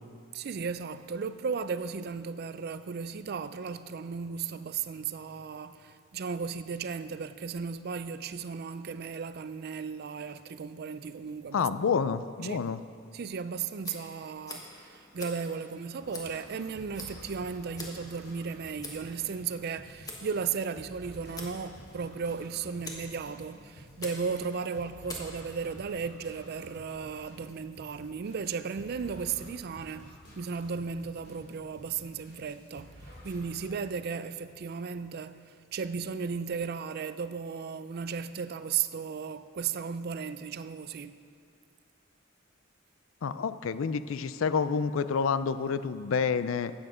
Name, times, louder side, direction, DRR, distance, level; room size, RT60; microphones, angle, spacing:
voice 1, 0.3-11.7 12.4-12.7 13.1-41.2, right 6 dB, 50° right, 0.4 m, -35 dB
voice 2, 11.5-12.8 43.2-46.7, left 5 dB, 75° left, 0.4 m, -28 dB
Tick, 13.8-25.9, left 2 dB, 20° left, 1.3 m, -48 dB
sound 1, 16.0-33.8, equal, 50° left, 3.4 m, -51 dB
13.0 x 8.9 x 5.0 m
head